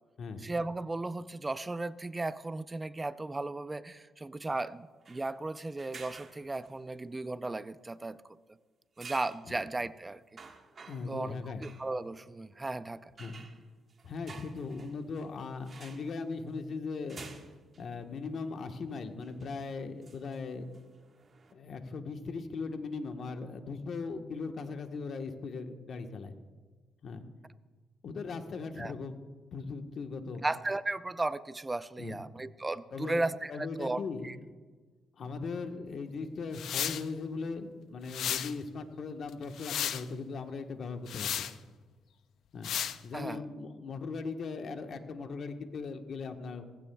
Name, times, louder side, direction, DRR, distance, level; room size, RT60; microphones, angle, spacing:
voice 1, 0.4-8.2 9.0-10.4 11.1-13.1 28.8-28.9 30.4-34.4 43.1-43.4, right 2 dB, 20° right, 14 dB, 0.5 m, -35 dB
sound 1, 5.0-5.3 5.8-6.8 9.0-9.4 9.9-10.0 10.4-11.2 11.6-11.9 13.2-15.3 15.7-16.1 17.1-17.9 18.4-18.5 19.2-19.5 20.0-21.5, right 4 dB, 40° right, 1.5 m, -51 dB
voice 2, 10.9-11.6 13.2-13.4 14.0-17.2 17.8-20.7 21.5-26.3 27.0-27.2 28.0-29.2 29.5-30.4 32.0-32.2 32.9-34.4 35.2-41.5 42.5-42.7 43.0-46.7, left 4 dB, 55° left, 5 dB, 1.3 m, -39 dB
sound 2, 36.5-37.0 38.1-38.5 39.3-40.0 41.1-41.5 42.6-43.0, left 9 dB, 70° left, 0.6 m, -33 dB
18.0 x 16.0 x 2.3 m, 1.4 s
cardioid pair, 90°, 0 cm